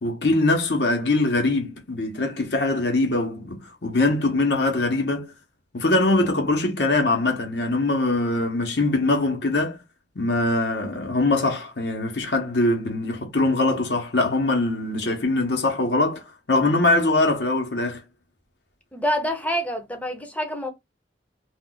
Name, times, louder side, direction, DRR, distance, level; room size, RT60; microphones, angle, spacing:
voice 1, 0.0-5.3 5.7-9.8 10.1-16.2 16.5-18.0, left 2 dB, 70° left, 1.0 m, -22 dB
voice 2, 18.9-20.7, equal, 10° left, 0.6 m, -26 dB
2.4 x 2.3 x 3.8 m
head